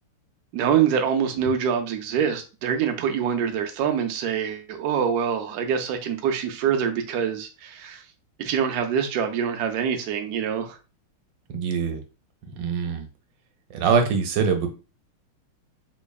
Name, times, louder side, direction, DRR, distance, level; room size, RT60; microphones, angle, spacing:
voice 1, 0.5-8.0 8.4-10.8, right 8 dB, 90° right, 0.8 m, -25 dB
voice 2, 11.5-12.0 12.5-13.1 13.7-14.7, right 6 dB, 70° right, 1.2 m, -23 dB
4.1 x 3.0 x 2.3 m
omnidirectional pair, 2.3 m